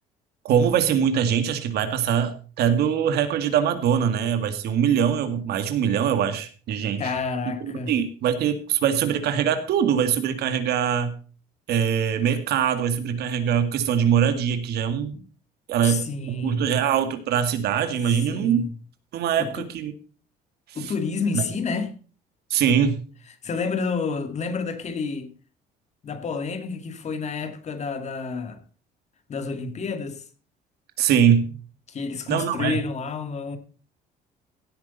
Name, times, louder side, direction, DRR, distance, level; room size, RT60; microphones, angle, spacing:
voice 1, 0.4-7.0 7.6-11.1 11.7-15.1 15.7-18.7 19.1-19.9 20.7-20.9 21.3-21.4 22.5-23.0 31.0-31.5 32.3-32.8, right 8 dB, 75° right, 2.0 m, -23 dB
voice 2, 7.0-7.9 15.1-15.2 15.8-16.7 18.1-18.7 19.4-19.7 20.7-22.0 23.4-25.3 26.0-28.6 29.3-30.2 31.9-33.6, left 4 dB, 40° left, 2.2 m, -29 dB
16.5 x 8.4 x 4.1 m
cardioid pair, 110°, 17 cm